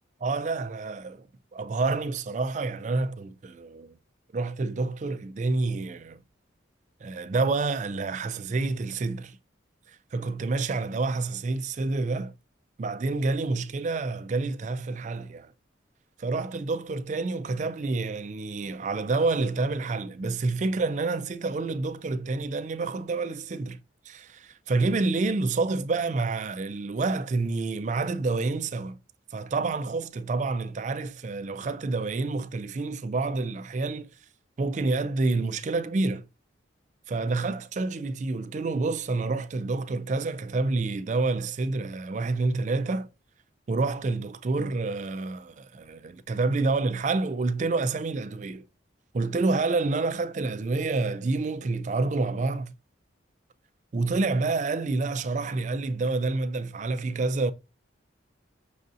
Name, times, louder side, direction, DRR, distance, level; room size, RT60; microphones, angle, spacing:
voice 1, 0.2-1.3 1.5-4.0 4.3-6.2 7.0-9.4 9.9-12.3 12.8-15.5 16.2-23.8 24.1-29.0 29.3-34.1 34.6-36.3 37.1-43.1 43.7-48.7 49.1-52.7 53.9-57.5, right 3 dB, 40° right, 0.3 m, -28 dB
6.3 x 2.6 x 2.4 m
head